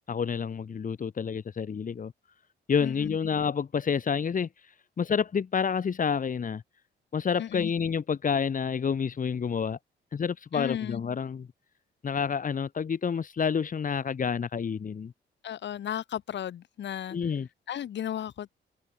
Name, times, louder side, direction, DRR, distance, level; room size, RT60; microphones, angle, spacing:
voice 1, 0.1-2.1 2.7-4.5 5.0-6.6 7.1-9.8 10.1-11.5 12.0-15.1 17.1-17.5, left 6 dB, 40° left, 2.6 m, -29 dB
voice 2, 2.8-3.2 7.4-7.7 10.5-11.0 15.4-17.2 17.7-18.5, left 10 dB, 65° left, 3.0 m, -34 dB
cardioid pair, 90°, 20 cm